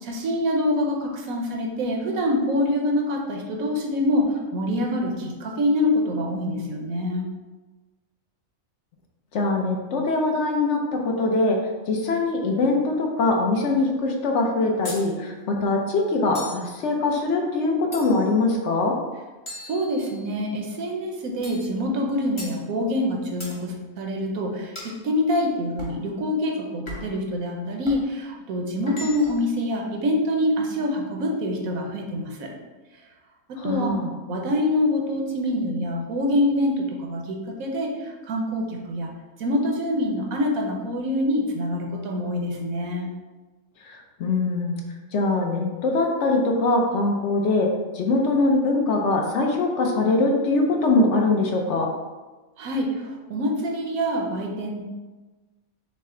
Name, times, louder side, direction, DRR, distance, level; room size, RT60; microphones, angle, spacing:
voice 1, 0.0-7.3 19.6-32.5 33.5-33.9 34.3-39.1 39.4-43.1 52.6-54.8, left 1 dB, 90° right, 1 dB, 1.2 m, -25 dB
voice 2, 9.3-11.6 11.9-18.9 33.6-34.1 43.8-44.8 45.1-47.7 47.9-51.9, left 3 dB, 60° left, 1 dB, 1.0 m, -22 dB
sound 1, 14.8-15.1 16.3-16.7 17.9-18.4 19.5-20.4 21.4-21.7 22.4-22.6 23.4-23.6 24.7-25.0 25.8-26.0 26.9-27.2 27.8-28.1 28.9-29.5, left 2 dB, 25° left, 0.9 m, -38 dB
6.4 x 2.2 x 3.7 m, 1.2 s
omnidirectional pair, 1.4 m